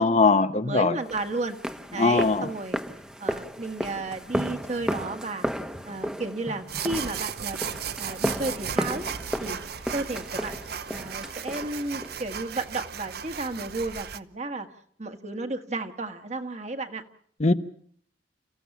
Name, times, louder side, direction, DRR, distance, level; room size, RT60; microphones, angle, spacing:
voice 1, 0.0-1.0 2.0-2.5 17.4-17.5, left 3 dB, 40° left, 9 dB, 1.0 m, -21 dB
voice 2, 0.6-1.6 1.9-2.8 3.2-5.5 5.8-7.6 8.0-9.0 9.4-9.6 9.9-10.6 10.9-14.7 15.0-17.0, right 2 dB, 40° right, 6 dB, 1.6 m, -33 dB
sound 1, 1.1-12.2, equal, 5° right, 1.0 m, -34 dB
sound 2, 6.7-14.2, right 8 dB, 60° right, 0.8 m, -36 dB
29.5 x 15.0 x 7.2 m, 0.62 s
head